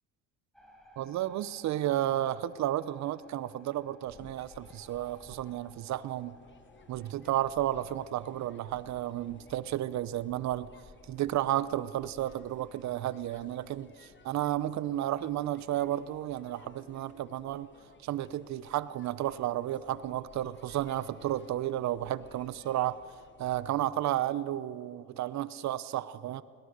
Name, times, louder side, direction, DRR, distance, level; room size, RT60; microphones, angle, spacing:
sound 1, 0.5-13.2, equal, ahead, 5.4 m, -61 dB
voice 1, 1.0-6.4 6.9-10.7 11.1-17.7 18.0-23.0 23.4-26.4, right 13 dB, 60° right, 18 dB, 0.8 m, -32 dB
sound 2, 4.1-23.9, left 5 dB, 40° left, 1.4 m, -58 dB
21.5 x 18.0 x 6.7 m, 2.3 s
supercardioid pair, 80°, 31 cm